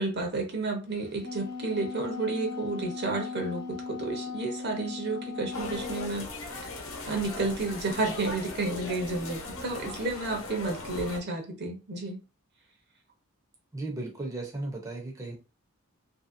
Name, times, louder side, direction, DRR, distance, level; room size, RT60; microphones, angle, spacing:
voice 1, 0.0-6.3 6.6-6.7 7.1-12.2, right 2 dB, 50° right, 0.8 m, -31 dB
Wind instrument woodwind instrument, 1.0-6.2, left 4 dB, 45° left, 1.1 m, -38 dB
sound 1, 5.5-11.2, left 2 dB, 80° left, 0.9 m, -39 dB
voice 2, 13.7-15.3, right 2 dB, 15° right, 0.6 m, -35 dB
3.0 x 2.7 x 2.5 m
head